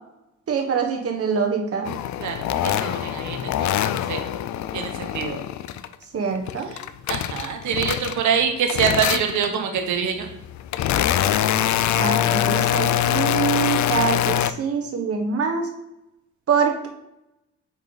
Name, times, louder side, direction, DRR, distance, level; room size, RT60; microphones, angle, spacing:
voice 1, 0.5-1.9 6.1-6.7 11.9-15.7 16.5-16.9, right 6 dB, 50° right, 3 dB, 1.3 m, -24 dB
sound 1, 1.8-5.9 6.3-8.4 8.7-9.6 10.2-14.5, left 11 dB, 70° left, 0.5 m, -24 dB
voice 2, 2.2-4.2 4.7-5.4 7.1-10.3, right 7 dB, 75° right, 4 dB, 1.1 m, -25 dB
8.2 x 3.2 x 4.0 m, 0.86 s
cardioid pair, 90°, 30 cm